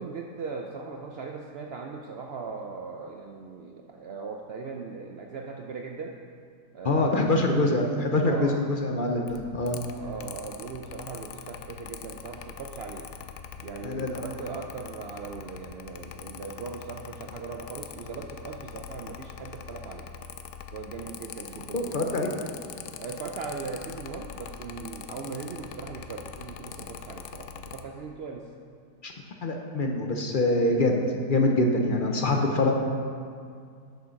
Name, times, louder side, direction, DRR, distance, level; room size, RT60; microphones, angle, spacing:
voice 1, 0.0-6.2 6.7-7.7 8.2-8.7 9.2-9.3 10.0-13.1 13.6-20.1 20.7-22.3 23.0-28.5, right 4 dB, 80° right, 2 dB, 0.5 m, -39 dB
voice 2, 6.8-9.8 13.8-14.2 21.7-22.3 29.0-29.1 29.4-31.0 31.3-32.7, left 2 dB, 45° left, 2 dB, 0.7 m, -24 dB
Mechanical fan, 9.3-27.8, left 8 dB, 80° left, 1.1 m, -43 dB
8.3 x 6.3 x 5.8 m, 2.2 s
omnidirectional pair, 1.7 m